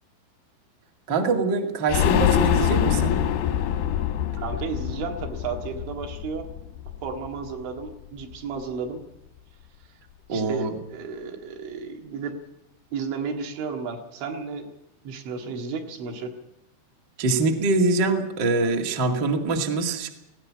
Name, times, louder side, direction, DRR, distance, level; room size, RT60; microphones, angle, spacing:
voice 1, 1.1-3.1 10.3-10.7 17.2-20.1, right 3 dB, 50° right, 2 dB, 1.3 m, -24 dB
sound 1, 1.9-7.5 7.8-7.9 8.2-8.3, left 10 dB, 80° left, 2.3 m, -25 dB
voice 2, 4.4-6.5 7.0-9.0 10.3-12.4 12.9-14.7 15.0-16.3, right 5 dB, 75° right, 2 dB, 4.2 m, -33 dB
19.0 x 16.5 x 8.4 m, 0.86 s
omnidirectional pair, 5.5 m